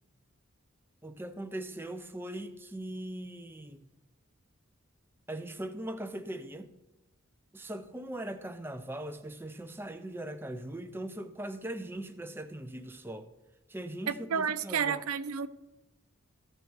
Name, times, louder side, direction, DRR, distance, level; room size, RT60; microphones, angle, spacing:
voice 1, 1.0-3.9 5.3-6.7 7.5-13.3 13.7-15.0, right 1 dB, 10° right, 0.5 m, -40 dB
voice 2, 14.1-15.5, right 7 dB, 90° right, 0.5 m, -31 dB
15.0 x 6.7 x 4.7 m
head